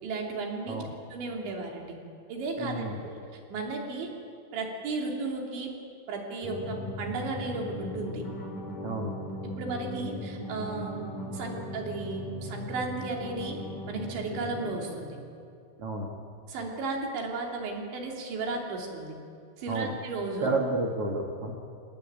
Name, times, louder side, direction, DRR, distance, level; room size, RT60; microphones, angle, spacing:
voice 1, 0.0-0.8 1.1-2.0 2.3-4.1 4.5-5.7 6.1-8.2 9.6-13.6 13.9-15.2 16.5-19.2 19.6-20.5, right 3 dB, 65° right, 0 dB, 5.3 m, -34 dB
voice 2, 2.6-3.0 8.8-9.1 15.8-16.1 19.7-19.9 20.4-21.5, right 2 dB, 50° right, 1 dB, 1.9 m, -31 dB
sound 1, 6.4-14.8, left 1 dB, 50° left, 4.4 m, -38 dB
27.5 x 18.5 x 9.0 m, 2.5 s
omnidirectional pair, 5.6 m